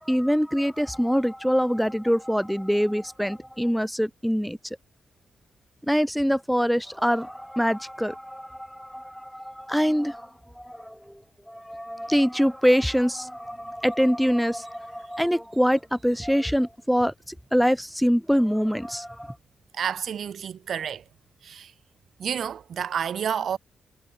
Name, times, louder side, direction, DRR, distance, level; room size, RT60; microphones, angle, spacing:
voice 1, 0.0-4.6 5.9-11.2 11.5-19.4, equal, ahead, 0.4 m, -24 dB
voice 2, 19.7-21.0 21.4-21.7 22.2-23.6, right 8 dB, 65° right, 0.4 m, -30 dB
cardioid pair, 85°, 0 cm